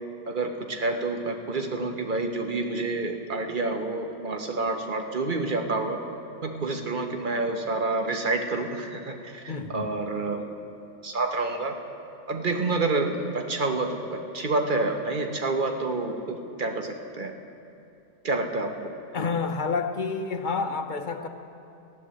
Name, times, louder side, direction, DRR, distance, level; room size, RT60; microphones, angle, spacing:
voice 1, 0.3-6.0 6.4-10.5 11.0-11.7 12.3-17.3 18.2-18.7, right 3 dB, 45° right, 4 dB, 1.3 m, -28 dB
voice 2, 9.5-9.9 19.1-21.3, left 4 dB, 45° left, 6 dB, 0.9 m, -29 dB
15.5 x 11.0 x 7.6 m, 2.7 s
omnidirectional pair, 1.2 m